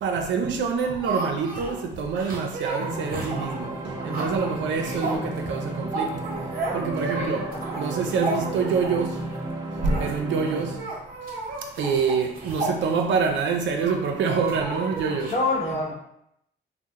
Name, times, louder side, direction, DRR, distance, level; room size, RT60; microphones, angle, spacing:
voice 1, 0.0-6.2 6.7-7.4 7.8-9.1 9.8-10.7 11.8-15.3, right 5 dB, 70° right, 0.5 m, -26 dB
sound 1, 0.7-9.2 9.7-10.1 10.4-10.5 10.7-13.3 13.8-15.3, right 3 dB, 50° right, 0.9 m, -33 dB
sound 2, 2.8-10.8, right 2 dB, 20° right, 0.5 m, -33 dB
voice 2, 4.8-5.1 7.2-7.6 9.9-10.0 15.3-15.9, left 2 dB, 35° left, 1.0 m, -28 dB
2.8 x 2.0 x 3.5 m
cardioid pair, 90°, 20 cm